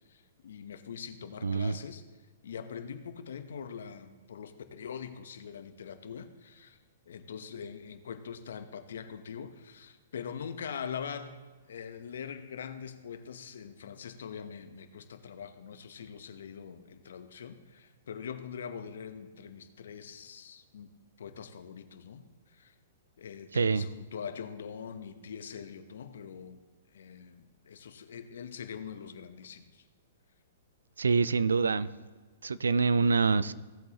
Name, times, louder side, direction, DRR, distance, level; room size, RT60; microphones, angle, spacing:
voice 1, 0.1-2.0 2.4-6.8 7.1-11.4 11.7-20.9 21.2-22.7 23.2-26.6 26.9-29.8, left 7 dB, 70° left, 10 dB, 0.9 m, -43 dB
voice 2, 1.4-1.8 23.5-23.9 31.0-31.9 32.4-33.5, right 4 dB, 80° right, 18 dB, 0.4 m, -25 dB
16.5 x 7.9 x 2.9 m, 1.4 s
hypercardioid pair, 115°, 0 cm